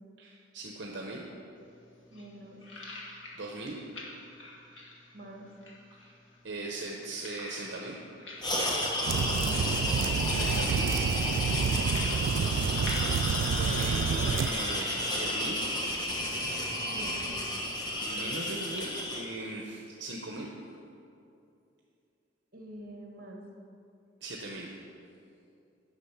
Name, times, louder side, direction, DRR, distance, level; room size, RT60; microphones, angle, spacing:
voice 1, 0.2-1.3 3.4-3.8 6.0-6.1 6.4-8.0 10.4-10.9 12.2-12.5 13.5-15.6 18.0-20.5 24.2-24.8, right 2 dB, 65° right, 0 dB, 0.8 m, -39 dB
sound 1, 1.6-17.3, left 2 dB, 85° left, 1.8 m, -48 dB
voice 2, 2.1-2.6 5.1-5.5 9.0-9.5 12.0-12.4 16.8-17.3 22.5-23.4, right 1 dB, 50° right, 1 dB, 1.4 m, -46 dB
sound 2, 8.4-19.2, left 1 dB, 20° left, 1.2 m, -32 dB
sound 3, 9.1-14.5, right 6 dB, 85° right, 0.3 m, -29 dB
9.8 x 6.4 x 5.7 m, 2.6 s
head